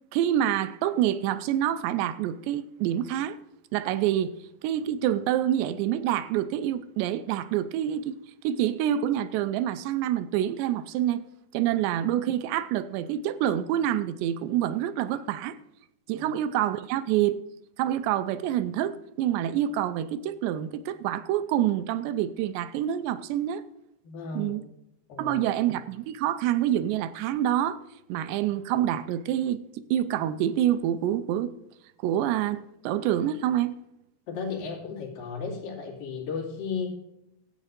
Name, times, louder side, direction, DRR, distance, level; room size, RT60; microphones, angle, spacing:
voice 1, 0.1-3.4 3.7-8.2 8.4-11.2 11.5-15.6 16.1-17.4 17.8-23.6 24.3-24.6 25.2-27.8 28.1-29.6 29.9-31.5 32.0-33.8, right 11 dB, 85° right, 2.8 m, -27 dB
voice 2, 24.0-24.6 25.1-25.4 34.3-36.9, left 5 dB, 55° left, 3.9 m, -34 dB
13.5 x 8.4 x 5.2 m
omnidirectional pair, 4.9 m